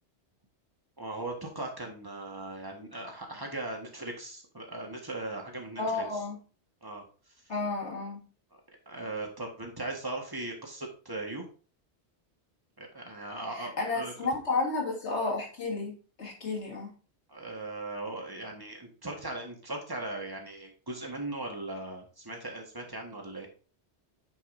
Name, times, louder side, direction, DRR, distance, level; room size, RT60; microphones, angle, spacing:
voice 1, 1.0-6.0 6.8-7.3 8.8-11.4 12.8-14.1 17.3-23.5, right 2 dB, 20° right, 1.5 m, -38 dB
voice 2, 5.8-6.4 7.5-8.3 13.5-16.9, left 3 dB, 80° left, 2.1 m, -32 dB
9.3 x 5.3 x 2.6 m
omnidirectional pair, 1.1 m